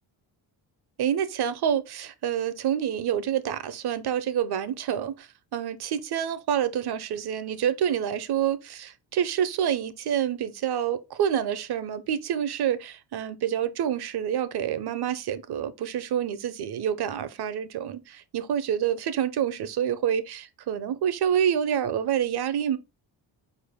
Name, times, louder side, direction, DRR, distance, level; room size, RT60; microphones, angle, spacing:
voice 1, 1.0-22.8, right 9 dB, 55° right, 0.6 m, -27 dB
4.4 x 2.7 x 3.4 m
cardioid pair, 80°, 48 cm